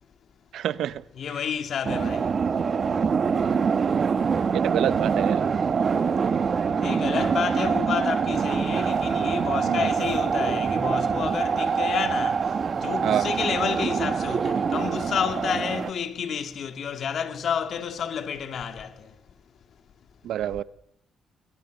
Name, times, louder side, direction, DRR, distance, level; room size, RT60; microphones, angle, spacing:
voice 1, 0.5-1.0 4.5-5.5 9.6-9.9 13.0-13.3 20.2-20.6, right 11 dB, 75° right, 1.0 m, -27 dB
voice 2, 1.1-2.4 6.7-19.2, left 7 dB, 60° left, 2.5 m, -30 dB
sound 1, 1.8-15.9, right 6 dB, 45° right, 1.5 m, -25 dB
23.0 x 22.0 x 8.1 m
cardioid pair, 90°, 0 cm